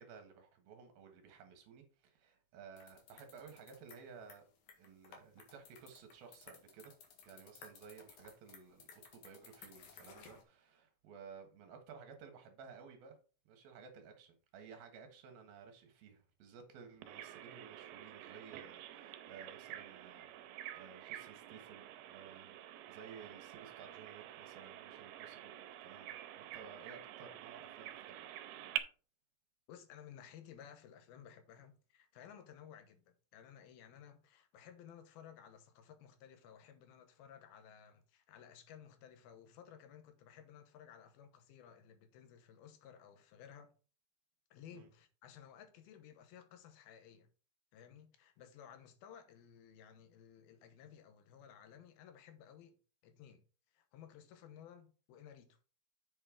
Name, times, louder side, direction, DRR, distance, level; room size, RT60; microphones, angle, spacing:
voice 1, 0.0-4.4 4.8-6.9 7.3-8.8 9.1-13.2 13.5-20.2 20.7-22.6 22.9-28.2 44.7-44.9, right 6 dB, 70° right, 3.2 m, -56 dB
sound 1, 2.8-10.4, left 5 dB, 60° left, 2.8 m, -58 dB
Bird vocalization bird call bird song, 17.0-28.8, right 13 dB, 85° right, 2.7 m, -48 dB
voice 2, 29.7-43.7 44.5-47.3 47.7-53.4 53.7-55.6, left 9 dB, 75° left, 2.8 m, -57 dB
7.6 x 6.6 x 3.7 m
omnidirectional pair, 4.5 m